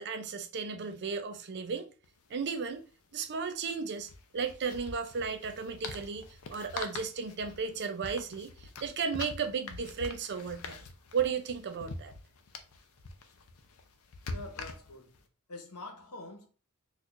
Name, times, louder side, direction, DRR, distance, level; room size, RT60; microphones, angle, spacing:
voice 1, 0.0-1.9 2.3-2.8 3.1-10.8 11.1-12.1, right 5 dB, 50° right, 0.4 m, -34 dB
sound 1, 2.0-2.1 2.3-2.5 4.0-15.2, left 3 dB, 65° left, 0.5 m, -44 dB
voice 2, 14.3-15.2 15.5-16.5, left 2 dB, 85° left, 1.0 m, -46 dB
4.3 x 2.4 x 2.4 m
head